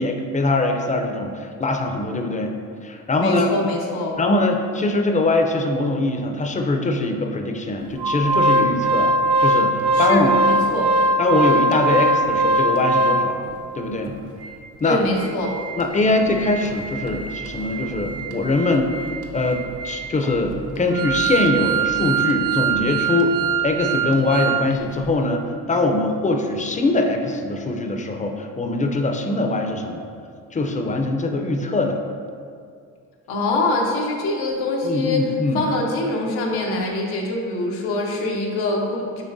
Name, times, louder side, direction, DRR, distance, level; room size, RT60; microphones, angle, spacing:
voice 1, 0.0-2.5 2.8-3.5 4.2-9.1 9.4-10.3 11.2-13.4 13.8-14.1 14.8-15.0 15.8-18.9 19.3-23.3 23.6-30.1 30.5-32.0 34.8-35.6, left 2 dB, 20° left, 3 dB, 0.5 m, -22 dB
voice 2, 3.2-4.2 9.9-10.9 14.8-15.5 33.3-35.2 35.5-39.2, left 2 dB, 85° left, -1 dB, 0.8 m, -24 dB
Organ, 8.0-13.5 14.1-14.2 14.4-14.6 15.0-24.6 24.9-25.0, right 2 dB, 55° right, 0.7 m, -22 dB
6.1 x 3.3 x 2.6 m, 2.2 s
supercardioid pair, 70°, 37 cm